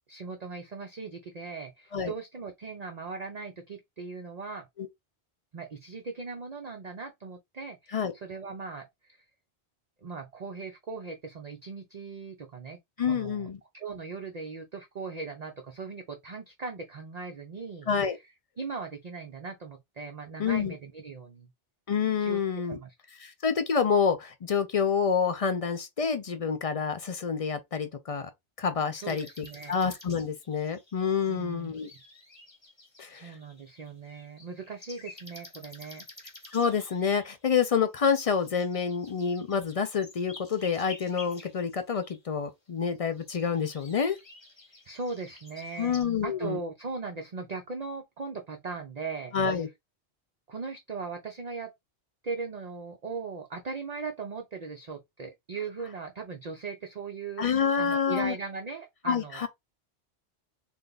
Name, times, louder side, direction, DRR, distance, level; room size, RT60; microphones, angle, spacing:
voice 1, 0.1-4.7 5.5-9.2 10.0-13.5 13.7-18.2 18.6-21.5 22.2-22.9 28.9-29.8 31.3-31.7 33.1-36.1 44.8-46.0 46.2-49.6 50.5-51.7 52.2-59.4, right 4 dB, 45° right, 0.6 m, -39 dB
voice 2, 13.0-13.6 17.9-18.2 20.4-20.7 21.9-22.8 23.2-28.3 28.6-31.9 33.0-33.3 36.5-44.2 45.8-46.6 49.3-49.7 57.4-58.3 59.1-59.5, left 6 dB, 55° left, 0.4 m, -28 dB
sound 1, 29.0-42.2 42.9-46.0, left 2 dB, 25° left, 1.0 m, -50 dB
3.3 x 2.4 x 3.8 m
omnidirectional pair, 1.2 m